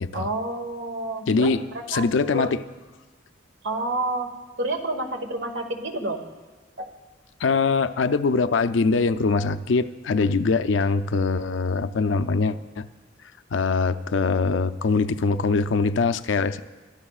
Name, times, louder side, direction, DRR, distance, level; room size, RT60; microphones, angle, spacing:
voice 1, 0.1-2.1 2.3-2.5 3.6-6.2 6.8-6.9, right 2 dB, 75° right, 5 dB, 1.4 m, -29 dB
voice 2, 1.3-1.6 1.9-2.6 7.4-12.9 13.5-16.6, left 4 dB, 75° left, 10 dB, 0.5 m, -23 dB
22.5 x 13.5 x 2.4 m, 1.3 s
head